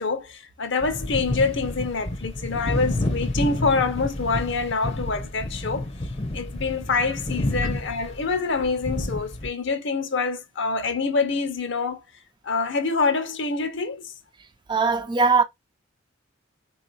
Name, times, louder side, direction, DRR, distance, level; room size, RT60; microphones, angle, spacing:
voice 1, 0.0-5.9 6.3-12.0 12.4-14.1, left 4 dB, 65° left, 0.9 m, -26 dB
sound 1, 0.8-9.5, left 1 dB, 30° left, 0.7 m, -30 dB
voice 2, 14.7-15.4, right 4 dB, 25° right, 0.4 m, -20 dB
3.8 x 2.8 x 2.5 m
head